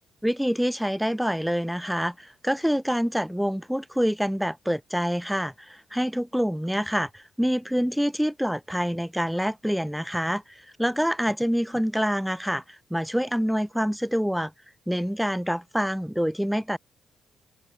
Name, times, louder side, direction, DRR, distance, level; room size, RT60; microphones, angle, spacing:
voice 1, 0.2-14.5 14.9-16.8, equal, ahead, 4.1 m, -26 dB
open air
cardioid pair, 90°, 0 cm